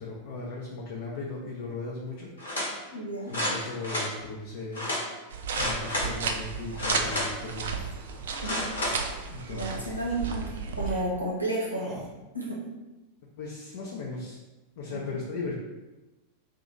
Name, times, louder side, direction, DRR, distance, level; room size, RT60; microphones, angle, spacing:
voice 1, 0.0-2.3 2.6-2.9 3.2-4.9 5.6-7.8 9.1-9.8 13.4-14.4 14.8-15.6, left 3 dB, 50° left, -3 dB, 0.5 m, -37 dB
sound 1, 2.4-2.7 3.3-4.1 4.7-5.0 5.5-6.1 6.7-7.5 8.4-9.0 9.5-9.6, left 1 dB, 70° left, 1.0 m, -30 dB
voice 2, 2.9-3.3 8.3-8.6 9.5-10.4 10.7-11.9 12.3-12.6 14.9-15.0, right 1 dB, 85° right, -4 dB, 0.8 m, -31 dB
sound 2, 5.3-10.9, right 5 dB, 60° right, 0.4 m, -34 dB
sound 3, 6.0-6.3 6.9-7.2 7.8-8.3 8.8-9.2 9.9-10.3 10.9-11.0 11.7-12.1, right 2 dB, 25° right, 0.7 m, -45 dB
2.7 x 2.5 x 3.9 m, 1.1 s
figure-of-eight pair, 90°, 0 cm